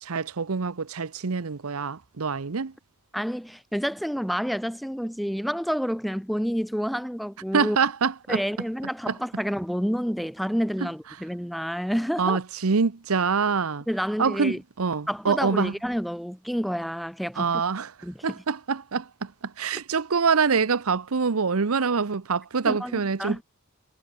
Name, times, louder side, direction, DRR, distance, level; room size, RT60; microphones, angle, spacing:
voice 1, 0.0-2.7 7.5-8.4 9.1-9.2 10.8-10.9 12.2-13.8 14.2-15.7 17.4-17.9 18.2-23.4, right 5 dB, 80° right, 0.8 m, -25 dB
voice 2, 3.1-7.8 8.3-12.4 13.9-14.6 15.1-17.6 18.0-18.1 22.7-23.4, equal, ahead, 5.5 m, -29 dB
head